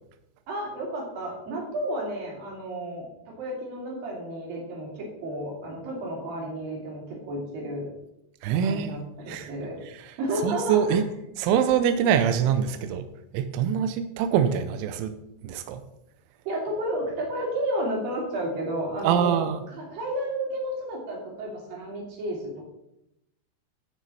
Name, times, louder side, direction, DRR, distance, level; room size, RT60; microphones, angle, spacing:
voice 1, 0.5-7.9 8.6-9.8 10.2-11.0 16.5-22.6, right 1 dB, 55° right, -2 dB, 4.3 m, -32 dB
voice 2, 8.4-9.0 9.3-9.5 9.9-10.1 10.4-11.0 11.4-13.0 13.3-15.1 15.4-15.8 19.0-19.6, right 8 dB, 90° right, 9 dB, 3.1 m, -24 dB
15.5 x 6.1 x 4.2 m, 0.86 s
omnidirectional pair, 5.4 m